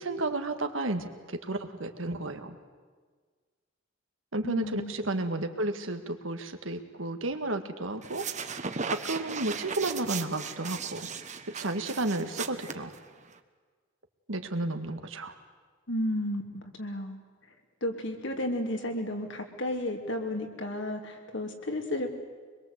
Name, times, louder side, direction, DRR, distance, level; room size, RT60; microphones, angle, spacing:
voice 1, 0.0-2.6 4.3-8.2 8.9-11.1 11.5-12.9 14.3-15.3, right 2 dB, 85° right, 7 dB, 1.9 m, -32 dB
voice 2, 4.4-5.0 15.9-17.2 17.8-22.1, left 1 dB, 65° left, 4 dB, 3.0 m, -33 dB
sound 1, 8.0-13.4, right 5 dB, 40° right, 1.2 m, -37 dB
24.5 x 22.0 x 8.2 m, 1.5 s
head